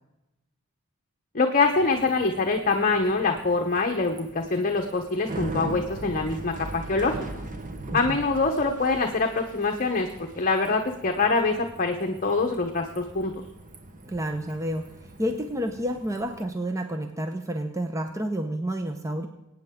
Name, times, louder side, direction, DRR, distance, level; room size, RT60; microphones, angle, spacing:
voice 1, 1.3-7.2 7.9-10.1 10.4-13.3, left 3 dB, 40° left, 3 dB, 1.0 m, -24 dB
Bicycle, 1.6-16.4, right 2 dB, 40° right, 1.1 m, -41 dB
voice 2, 14.0-19.3, equal, 15° right, 6 dB, 0.8 m, -30 dB
22.0 x 9.2 x 3.7 m, 0.97 s
head